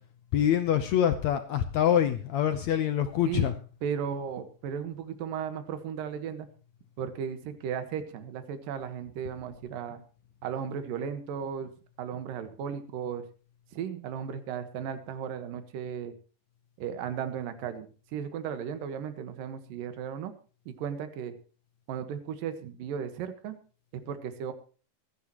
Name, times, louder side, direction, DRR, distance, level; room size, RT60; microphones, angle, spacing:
voice 1, 0.3-3.5, left 10 dB, 70° left, 9 dB, 1.7 m, -25 dB
voice 2, 3.3-6.5 7.0-10.0 10.4-11.7 12.0-13.2 13.7-16.1 16.8-20.3 20.7-21.3 21.9-23.6 23.9-24.5, right 8 dB, 75° right, 10 dB, 3.0 m, -35 dB
25.0 x 10.5 x 3.0 m, 0.38 s
omnidirectional pair, 4.2 m